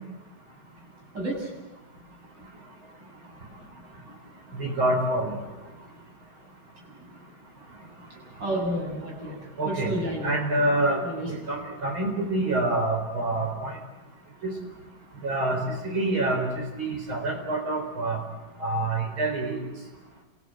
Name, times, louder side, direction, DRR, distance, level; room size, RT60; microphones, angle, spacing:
voice 1, 1.1-1.5 8.4-9.4 9.6-10.3 11.0-11.3, right 1 dB, 60° right, -2 dB, 8.0 m, -30 dB
voice 2, 4.5-5.4 9.6-9.9 10.2-11.0 11.3-13.7 14.4-14.5 15.2-15.6 15.9-16.5 16.8-18.2 18.6-19.6, right 2 dB, 85° right, 2 dB, 5.2 m, -26 dB
29.5 x 16.0 x 7.9 m, 1.1 s
omnidirectional pair, 2.2 m